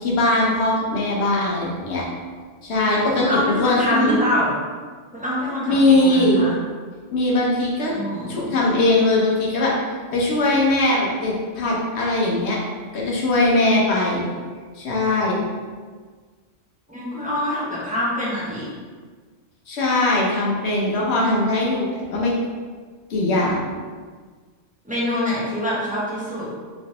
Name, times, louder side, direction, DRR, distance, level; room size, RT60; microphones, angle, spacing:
voice 1, 0.0-2.0 2.6-4.2 5.7-6.5 7.1-7.9 8.3-9.7 10.1-12.6 12.9-14.3 14.8-15.4 19.7-22.3 23.1-23.7, left 2 dB, 60° left, -4 dB, 1.0 m, -20 dB
voice 2, 3.2-4.5 5.1-6.6 7.9-8.6 16.9-18.7 24.8-26.5, left 1 dB, 5° right, -9 dB, 0.8 m, -25 dB
3.1 x 3.1 x 2.9 m, 1.5 s
omnidirectional pair, 1.3 m